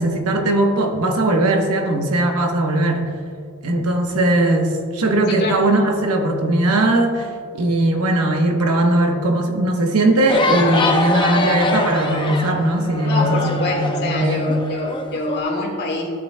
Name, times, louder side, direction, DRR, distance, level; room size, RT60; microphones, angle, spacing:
voice 1, 0.0-3.1 3.6-14.5, right 1 dB, 80° right, 3 dB, 1.1 m, -19 dB
voice 2, 5.3-5.6 13.0-16.1, left 2 dB, 45° left, -1 dB, 1.7 m, -25 dB
sound 1, 10.3-15.4, left 2 dB, 20° left, 0.6 m, -23 dB
13.0 x 8.7 x 2.2 m, 2.2 s
head